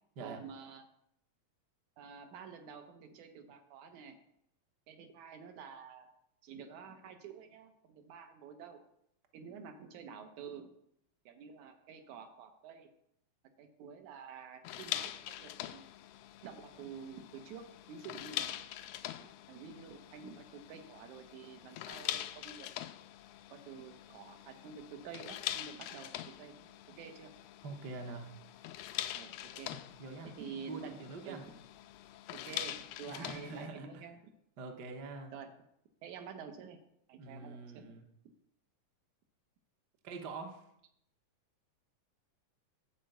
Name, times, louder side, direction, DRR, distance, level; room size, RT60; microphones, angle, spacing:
voice 1, 0.2-0.8 2.0-4.2 4.9-6.1 6.4-8.8 9.3-10.7 11.3-12.9 13.6-15.9 16.4-18.6 19.2-22.7 23.5-27.3 29.2-29.7 30.2-31.0 31.3-31.5 32.5-34.2 35.3-35.5 36.0-36.8 37.1-38.0, right 6 dB, 75° right, 6 dB, 2.3 m, -49 dB
sound 1, 14.7-33.7, left 13 dB, 85° left, 2.0 m, -44 dB
voice 2, 27.6-28.3 29.7-30.3 30.7-31.4 33.1-34.0 34.6-35.3 37.2-38.0 40.0-40.6, right 3 dB, 55° right, 3 dB, 1.1 m, -45 dB
10.0 x 4.5 x 7.9 m, 0.74 s
omnidirectional pair, 3.5 m